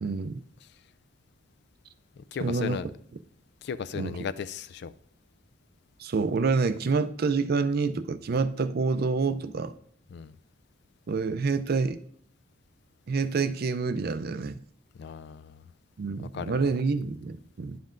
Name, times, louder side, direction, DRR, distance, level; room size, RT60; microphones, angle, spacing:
voice 1, 0.0-0.4 2.4-2.8 3.9-4.2 6.0-9.7 11.1-12.0 13.1-14.6 16.0-17.8, right 4 dB, 50° right, 0.4 m, -27 dB
voice 2, 2.2-2.9 3.6-4.9 10.1-10.3 15.0-15.6 16.3-16.7, left 6 dB, 55° left, 0.3 m, -36 dB
10.0 x 7.5 x 2.5 m
head